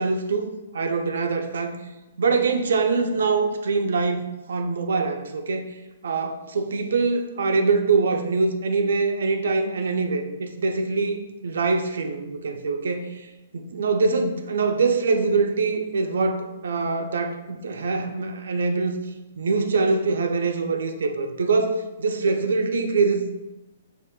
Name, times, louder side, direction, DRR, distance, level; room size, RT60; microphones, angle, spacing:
voice 1, 0.0-1.7 2.2-5.7 6.0-13.3 13.5-19.0 19.4-23.5, right 4 dB, 80° right, 5 dB, 0.5 m, -24 dB
6.1 x 2.5 x 2.3 m, 1.0 s
hypercardioid pair, 170°, 0 cm